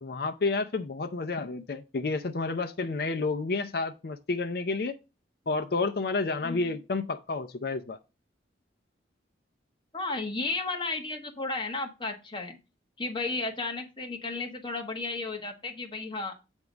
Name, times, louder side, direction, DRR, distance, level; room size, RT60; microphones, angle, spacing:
voice 1, 0.0-5.0 5.5-8.0, left 3 dB, 55° left, 0.5 m, -30 dB
voice 2, 6.4-6.7 9.9-12.6 13.0-16.3, left 3 dB, 25° left, 1.2 m, -33 dB
8.0 x 3.6 x 6.1 m
head